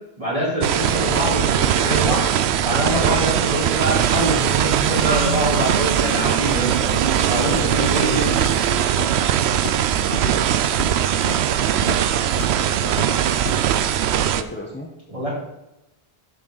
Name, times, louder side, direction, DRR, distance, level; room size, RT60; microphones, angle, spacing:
voice 1, 0.2-2.3 2.6-6.9 7.2-8.4 15.1-15.3, right 1 dB, 35° right, -6 dB, 4.0 m, -24 dB
sound 1, 0.6-14.4, right 10 dB, 85° right, 0.8 m, -20 dB
sound 2, 3.8-8.8, right 5 dB, 60° right, 1.1 m, -30 dB
Walk footsteps, 8.4-8.7 9.0-9.3 9.5-9.9 10.1-11.0 11.3-11.5 11.8-12.1 12.4-12.6 12.9-13.1 13.5-13.6, left 4 dB, 60° left, 1.0 m, -32 dB
voice 2, 8.5-9.3 9.9-10.4 14.4-14.9, left 1 dB, 10° left, 0 dB, 1.0 m, -37 dB
11.5 x 7.1 x 4.0 m, 0.88 s
omnidirectional pair, 1.1 m